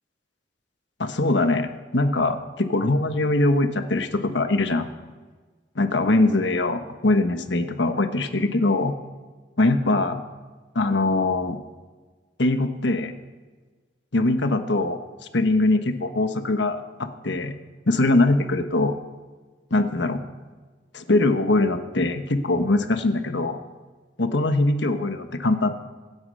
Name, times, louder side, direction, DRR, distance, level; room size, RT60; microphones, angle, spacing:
voice 1, 1.0-4.9 5.8-8.9 9.6-10.2 10.7-11.6 12.4-13.1 14.1-15.0 15.3-17.6 17.9-18.9 19.7-20.2 20.9-23.6 24.2-25.7, left 2 dB, 75° left, 8 dB, 1.3 m, -22 dB
24.5 x 9.6 x 5.5 m, 1.4 s
head